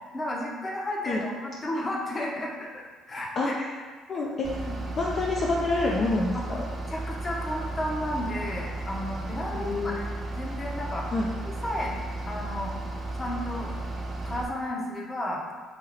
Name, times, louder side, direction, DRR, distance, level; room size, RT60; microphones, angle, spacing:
voice 1, 0.1-2.8 3.1-3.5 4.7-4.8 6.3-6.5 6.9-11.1 11.5-11.9 12.3-12.7 13.1-13.7 14.2-15.4, left 1 dB, 30° left, -2 dB, 0.8 m, -33 dB
voice 2, 3.4-3.8 4.1-6.7 9.5-10.0 11.1-11.3, left 2 dB, 45° left, -4 dB, 0.4 m, -28 dB
Bus / Idling, 4.4-14.5, right 2 dB, 35° right, 0.5 m, -34 dB
2.9 x 2.7 x 4.0 m, 1.5 s
hypercardioid pair, 65°, 0 cm